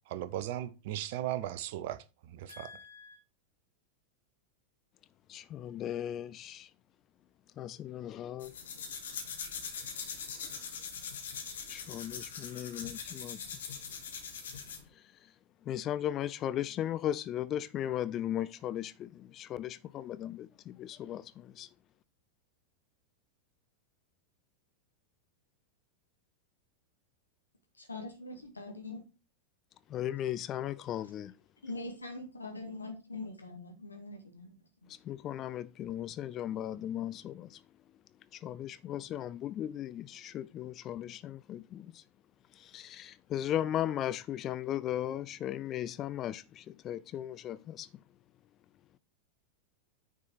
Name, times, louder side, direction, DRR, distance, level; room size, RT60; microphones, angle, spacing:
voice 1, 0.1-2.7, right 13 dB, 50° right, 0.8 m, -37 dB
voice 2, 2.5-3.2 27.8-29.0 31.6-34.5 34.8-34.9, left 2 dB, 80° left, 1.6 m, -43 dB
voice 3, 5.3-6.7 7.6-8.5 9.1-9.2 11.7-13.4 14.9-15.3 15.6-21.7 29.9-31.3 34.9-37.6 38.3-42.0 42.5-48.0, left 11 dB, 30° left, 0.4 m, -37 dB
sound 1, 8.4-14.9, left 6 dB, 65° left, 2.0 m, -42 dB
9.6 x 4.7 x 4.4 m
figure-of-eight pair, 90°, 0 cm